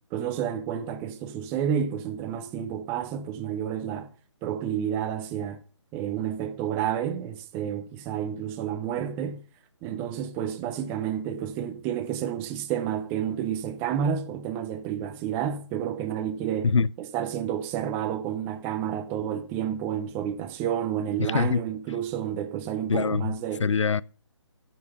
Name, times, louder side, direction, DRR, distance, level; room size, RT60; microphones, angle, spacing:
voice 1, 0.1-4.1 4.4-5.6 5.9-9.4 9.8-23.7, right 9 dB, 15° right, 0.6 m, -30 dB
voice 2, 21.2-21.6 22.9-23.2 23.6-24.0, left 5 dB, 80° left, 0.5 m, -23 dB
12.0 x 6.0 x 6.4 m
figure-of-eight pair, 150°, 15 cm